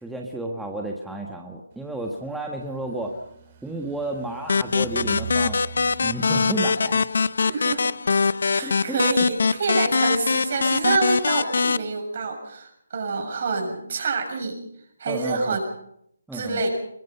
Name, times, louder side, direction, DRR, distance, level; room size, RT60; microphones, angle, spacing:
voice 1, 0.0-3.1 3.6-5.6 6.0-7.3 8.6-9.0 15.1-15.6 16.3-16.6, right 2 dB, ahead, -1 dB, 1.5 m, -32 dB
sound 1, 1.7-7.9, right 6 dB, 30° right, 5.0 m, -42 dB
sound 2, 4.5-11.8, left 4 dB, 65° left, 0.7 m, -23 dB
voice 2, 7.4-7.8 8.5-14.6 15.0-15.6 16.3-16.7, right 4 dB, 50° right, 3 dB, 6.8 m, -27 dB
22.0 x 21.0 x 5.6 m, 0.74 s
hypercardioid pair, 160°, 0 cm